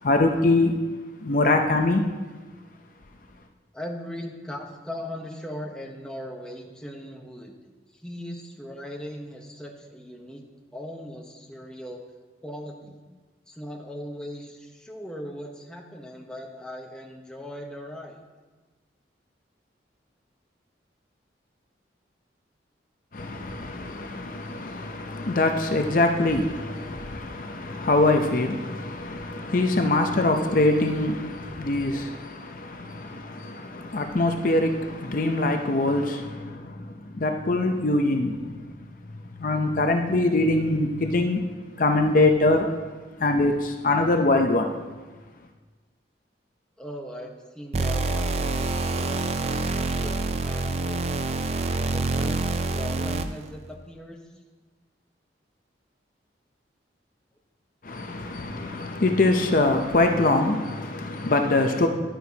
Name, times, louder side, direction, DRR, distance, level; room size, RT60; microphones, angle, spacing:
voice 1, 0.0-0.8 1.2-2.1 23.1-38.7 39.4-41.4 41.8-42.7 43.2-44.7 57.8-61.9, left 2 dB, 45° left, 0.6 m, -23 dB
voice 2, 3.7-7.6 7.9-10.4 10.7-12.0 12.4-13.0 13.5-18.2 46.8-49.4 49.7-51.2 51.7-52.4 52.7-54.2, left 1 dB, 5° left, 0.9 m, -39 dB
sound 1, 47.7-53.5, right 3 dB, 35° right, 0.4 m, -26 dB
11.0 x 10.0 x 2.8 m
head